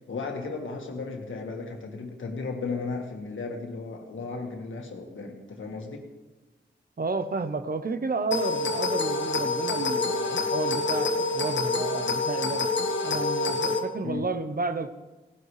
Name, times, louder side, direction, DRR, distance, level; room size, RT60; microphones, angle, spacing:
voice 1, 0.1-6.1 14.0-14.3, left 4 dB, 85° left, 3 dB, 1.8 m, -35 dB
voice 2, 7.0-12.7 13.0-14.9, right 3 dB, 50° right, 10 dB, 0.9 m, -31 dB
sound 1, 8.3-13.8, left 3 dB, 70° left, 1.5 m, -27 dB
18.0 x 11.5 x 3.3 m, 1.2 s
cardioid pair, 60°, 20 cm